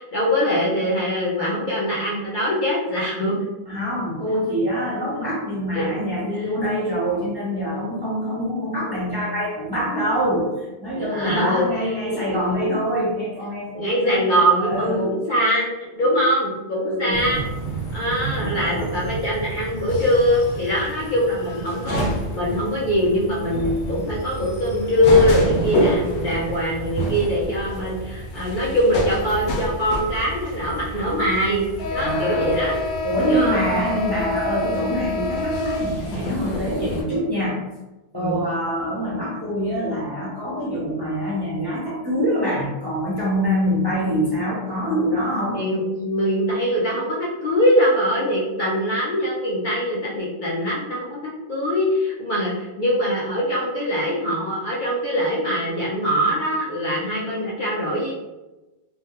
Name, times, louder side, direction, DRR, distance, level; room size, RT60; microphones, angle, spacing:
voice 1, 0.0-3.4 5.1-5.2 5.7-5.9 6.3-6.5 11.0-11.7 12.1-12.7 13.8-17.4 17.9-22.0 22.3-31.7 31.9-32.8 33.2-33.6 38.1-38.4 45.5-58.1, equal, 55° left, -6 dB, 0.6 m, -22 dB
voice 2, 3.7-14.3 14.6-15.1 16.0-16.2 16.8-17.3 18.3-18.8 32.0-32.5 33.0-37.6 38.1-45.6, equal, 30° right, -8 dB, 0.5 m, -25 dB
sound 1, 17.1-37.0, equal, 85° left, 1.0 m, -28 dB
2.3 x 2.1 x 2.8 m, 1.1 s
omnidirectional pair, 1.1 m